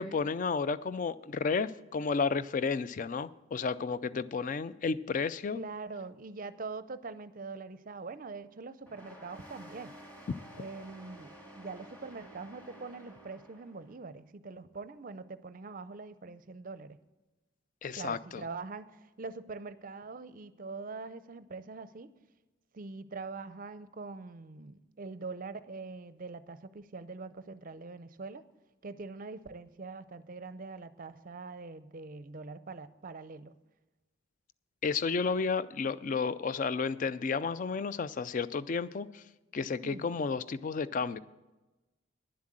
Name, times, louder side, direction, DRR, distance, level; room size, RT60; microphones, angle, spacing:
voice 1, 0.0-5.6 17.8-18.4 34.8-39.2 39.5-41.2, left 5 dB, 40° left, 16 dB, 0.4 m, -32 dB
voice 2, 5.5-9.9 10.5-17.0 17.9-22.1 22.7-28.4 28.8-33.5 39.8-40.1, right 4 dB, 40° right, 13 dB, 0.5 m, -43 dB
sound 1, 8.9-14.0, right 1 dB, 10° left, 1.9 m, -51 dB
10.5 x 7.6 x 7.4 m, 1.1 s
head